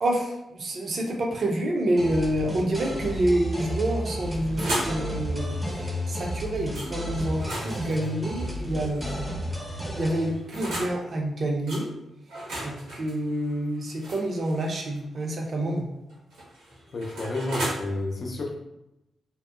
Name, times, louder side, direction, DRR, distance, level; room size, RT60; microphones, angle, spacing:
voice 1, 0.0-9.3 9.9-11.9 12.6-15.9, right 1 dB, 55° right, 0 dB, 0.6 m, -28 dB
sound 1, 2.0-10.3, equal, 10° right, 0.6 m, -32 dB
sound 2, 4.0-5.0 6.7-6.9 7.3-9.2 10.0-11.0 11.7-11.8 12.3-15.0 16.1-17.8, right 1 dB, 85° right, 0.9 m, -35 dB
voice 2, 16.9-18.5, left 2 dB, 55° left, 0 dB, 0.5 m, -30 dB
2.7 x 2.0 x 2.3 m, 0.90 s
hypercardioid pair, 40°, 0 cm